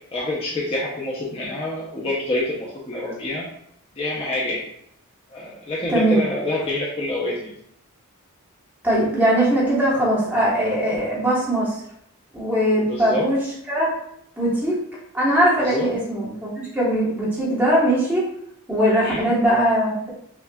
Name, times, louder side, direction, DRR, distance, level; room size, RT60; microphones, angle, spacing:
voice 1, 0.1-3.4 4.0-4.6 5.3-7.5 12.9-13.3 15.6-15.9 18.9-19.3, left 1 dB, 25° left, -5 dB, 0.6 m, -27 dB
voice 2, 5.9-6.2 8.8-11.8 12.3-13.4 13.7-13.9 14.4-14.8 15.1-18.3 18.7-20.1, right 1 dB, 10° right, -6 dB, 1.1 m, -20 dB
5.8 x 2.3 x 2.3 m, 0.73 s
head